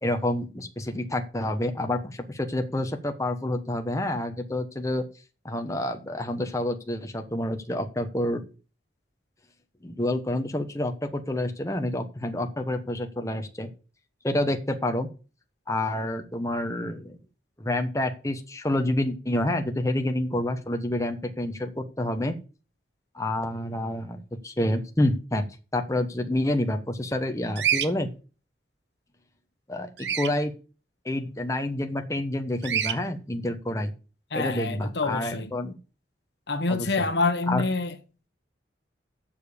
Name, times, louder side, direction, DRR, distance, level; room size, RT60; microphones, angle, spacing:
voice 1, 0.0-5.0 5.4-8.4 9.8-13.7 14.2-15.1 15.7-17.2 17.6-22.4 23.1-25.4 25.7-28.1 29.7-30.5 31.0-33.9 34.3-35.8 36.7-36.9 37.5-37.6, left 1 dB, 15° left, 1.1 m, -28 dB
Bird vocalization bird call bird song, 27.6-27.9 30.0-30.3 32.6-33.0, right 8 dB, 70° right, 0.9 m, -26 dB
voice 2, 34.3-35.5 36.5-38.0, left 3 dB, 65° left, 1.1 m, -27 dB
7.3 x 6.9 x 7.0 m
head